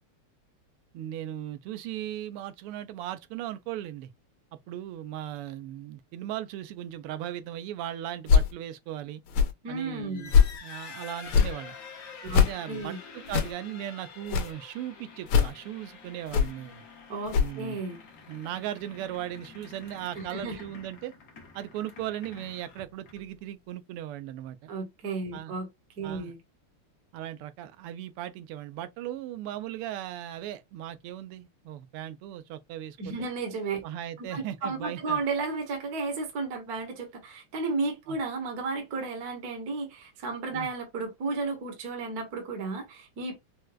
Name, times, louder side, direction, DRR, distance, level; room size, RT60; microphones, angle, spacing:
voice 1, 0.9-4.1 4.7-9.2 9.7-10.3 10.6-11.7 12.3-16.8 17.3-17.8 18.3-21.1 21.5-24.7 25.3-25.5 26.0-26.3 27.1-33.3 33.8-35.2 38.1-38.2 40.5-40.7, right 12 dB, 85° right, 1.5 m, -38 dB
sound 1, 8.3-8.5 9.3-9.5 10.3-10.6 11.3-11.5 12.3-12.5 13.3-13.5 14.3-14.5 15.3-15.5 16.3-16.5 17.3-17.5, left 6 dB, 80° left, 1.6 m, -22 dB
voice 2, 9.6-10.3 12.2-13.0 17.1-18.0 20.1-20.7 24.7-25.7 26.0-26.4 33.0-33.8 34.2-43.4, right 3 dB, 50° right, 1.4 m, -33 dB
sound 2, 10.0-23.4, left 5 dB, 55° left, 0.9 m, -48 dB
4.7 x 2.2 x 2.2 m
omnidirectional pair, 2.4 m